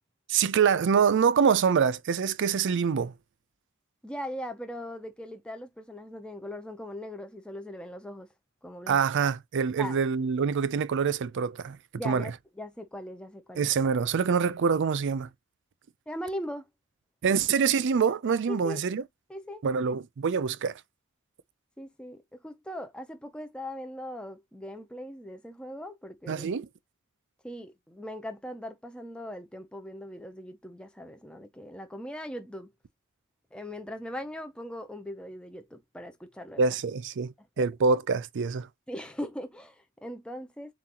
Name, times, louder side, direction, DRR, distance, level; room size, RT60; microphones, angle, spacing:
voice 1, 0.3-3.1 8.9-11.8 12.0-12.3 13.6-15.3 17.2-19.0 19.6-20.7 26.3-26.7 36.6-38.7, right 6 dB, 55° right, 0.4 m, -25 dB
voice 2, 4.0-8.3 8.6-9.0 9.8-10.0 11.9-13.7 16.1-16.7 18.5-18.8 19.3-19.6 21.8-26.4 27.4-32.7 33.5-36.6 37.6-37.7 38.9-40.7, equal, 5° left, 0.6 m, -40 dB
7.3 x 2.5 x 2.9 m
head